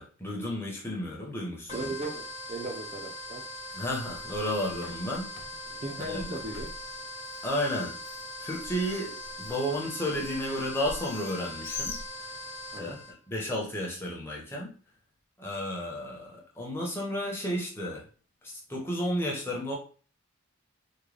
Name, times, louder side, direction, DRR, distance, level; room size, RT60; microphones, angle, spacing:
voice 1, 0.0-1.9 3.7-5.3 6.0-6.4 7.4-7.9 8.4-12.0 12.8-13.0 13.3-14.7 15.4-18.0 18.4-19.8, equal, 10° left, -3 dB, 0.8 m, -32 dB
sound 1, 1.7-13.1, left 1 dB, 30° left, 1.1 m, -41 dB
voice 2, 1.7-3.4 5.7-6.7 12.7-13.0, right 2 dB, 30° right, 1 dB, 0.4 m, -37 dB
Bird, 3.8-12.7, left 3 dB, 65° left, 0.6 m, -45 dB
3.6 x 2.2 x 3.3 m, 0.39 s
head